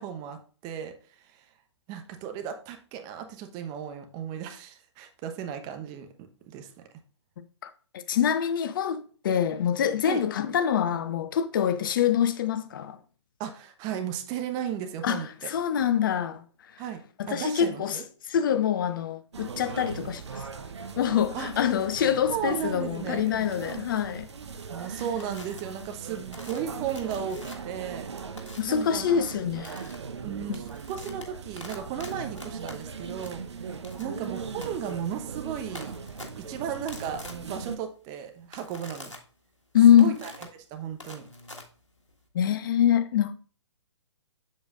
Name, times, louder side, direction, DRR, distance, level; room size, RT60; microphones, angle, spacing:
voice 1, 0.0-1.4 1.9-6.7 10.0-10.3 13.4-15.5 16.8-18.0 21.3-21.5 22.3-23.3 24.7-28.1 28.7-29.0 30.2-33.4 34.0-35.9 36.4-39.1 39.9-40.3 40.7-41.3, right 8 dB, 25° right, 0.9 m, -35 dB
voice 2, 8.1-13.0 15.0-16.4 16.7-16.8 17.2-18.0 18.3-20.4 21.0-24.3 24.9-25.0 28.6-29.9 39.7-40.1 42.3-43.3, left 9 dB, 45° left, 0.6 m, -24 dB
sound 1, 19.3-37.8, right 6 dB, 65° right, 0.9 m, -39 dB
sound 2, 25.2-25.6 26.3-27.8 28.4-28.8 29.6-29.9 30.4-42.3, left 1 dB, 90° left, 1.6 m, -46 dB
7.4 x 7.2 x 2.5 m
figure-of-eight pair, 125°, 15 cm